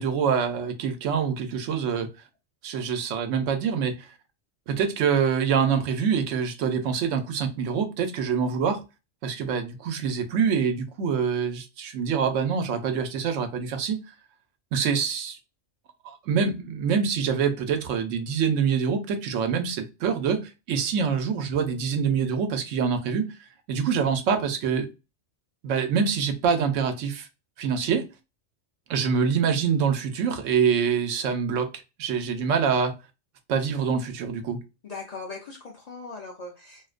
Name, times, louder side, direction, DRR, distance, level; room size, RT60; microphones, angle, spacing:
voice 1, 0.0-2.1 2.6-4.1 4.7-8.8 9.2-14.0 14.7-15.4 16.0-23.3 23.7-24.9 25.6-27.3 27.6-28.1 28.9-31.7 32.0-32.9 33.5-34.6, right 6 dB, 90° right, 1.0 m, -25 dB
voice 2, 34.8-36.9, left 3 dB, 60° left, 0.4 m, -39 dB
2.5 x 2.1 x 2.4 m
omnidirectional pair, 1.3 m